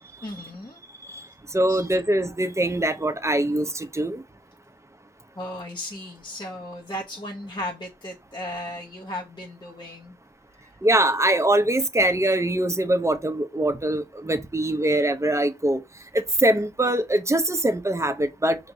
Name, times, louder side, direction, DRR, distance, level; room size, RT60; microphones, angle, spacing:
voice 1, 0.2-0.8 1.7-1.9 5.4-10.2 10.5-10.8, left 1 dB, 30° left, 0.8 m, -36 dB
voice 2, 1.5-4.2 10.8-15.8 16.1-18.6, right 1 dB, 20° right, 0.7 m, -23 dB
5.1 x 2.9 x 2.6 m
cardioid pair, 50°, 15 cm